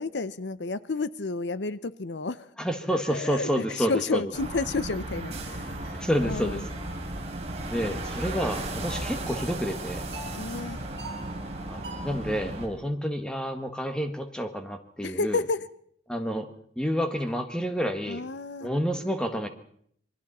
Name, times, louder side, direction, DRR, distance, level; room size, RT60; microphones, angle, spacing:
voice 1, 0.0-2.5 3.1-5.8 6.2-6.6 10.3-10.8 15.0-15.6 18.1-18.7, left 4 dB, 80° left, 15 dB, 0.8 m, -31 dB
voice 2, 2.6-4.2 5.9-6.7 7.7-10.1 11.7-15.4 16.1-16.5 16.8-18.3 18.6-19.5, equal, 5° left, 6 dB, 1.7 m, -29 dB
sound 1, 4.3-12.7, right 1 dB, 35° right, 3.6 m, -35 dB
sound 2, 5.8-6.0 6.7-6.9 7.5-7.8 8.4-8.7 9.3-9.6 10.1-10.4 11.0-11.3 11.8-12.2, right 2 dB, 60° right, 5.9 m, -44 dB
27.5 x 23.0 x 4.3 m, 0.64 s
head